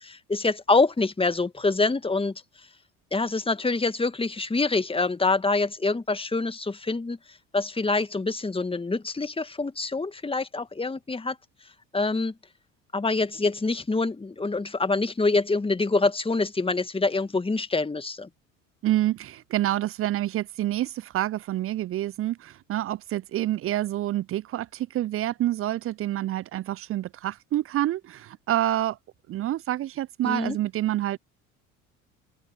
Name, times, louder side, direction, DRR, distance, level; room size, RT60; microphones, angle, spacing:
voice 1, 0.0-2.3 3.1-7.2 7.5-11.4 11.9-12.3 12.9-18.3 30.2-30.6, left 3 dB, 15° left, 1.9 m, -25 dB
voice 2, 18.8-29.0 29.3-31.2, right 14 dB, 35° right, 0.6 m, -27 dB
open air
figure-of-eight pair, 60°, 40 cm